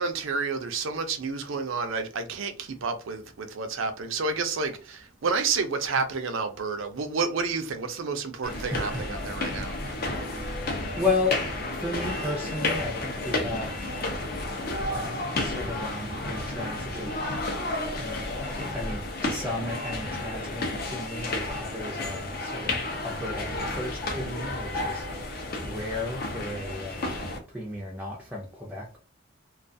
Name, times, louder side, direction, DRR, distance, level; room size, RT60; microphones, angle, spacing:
voice 1, 0.0-10.0, right 4 dB, 70° right, 0.5 m, -30 dB
sound 1, 8.4-27.4, left 2 dB, 45° left, 0.6 m, -32 dB
voice 2, 8.5-9.0 10.6-11.4 11.8-13.7 14.8-17.1 17.9-22.7 23.0-23.4 23.7-25.0 25.6-29.0, left 2 dB, 5° right, 0.4 m, -34 dB
2.3 x 2.3 x 2.6 m
head